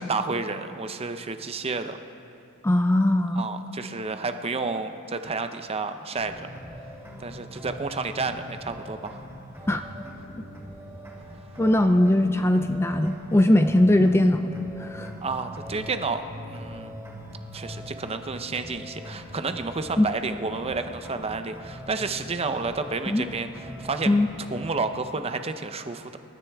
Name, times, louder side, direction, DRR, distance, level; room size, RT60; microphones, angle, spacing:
voice 1, 0.0-2.0 3.3-6.5 7.2-9.2 15.2-17.0 17.5-24.1 24.5-26.2, right 4 dB, 30° right, 8 dB, 0.6 m, -31 dB
voice 2, 2.6-3.4 9.7-9.8 11.6-15.1 20.0-20.1 23.1-23.2 24.1-24.3, left 1 dB, 10° left, 7 dB, 0.4 m, -20 dB
sound 1, 6.1-24.7, equal, 10° right, 3.1 m, -42 dB
27.0 x 13.0 x 3.5 m, 2.7 s
head